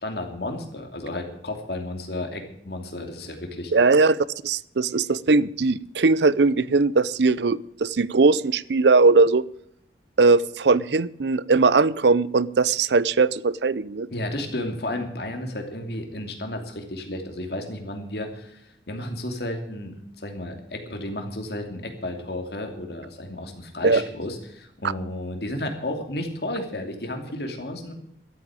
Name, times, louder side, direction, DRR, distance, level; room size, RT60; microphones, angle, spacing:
voice 1, 0.0-3.7 14.1-27.9, left 1 dB, 65° left, 4 dB, 2.8 m, -32 dB
voice 2, 3.7-4.2 4.4-9.4 10.2-14.1 23.8-24.0, right 3 dB, 75° right, 19 dB, 0.6 m, -19 dB
13.0 x 8.6 x 8.9 m, 0.74 s
head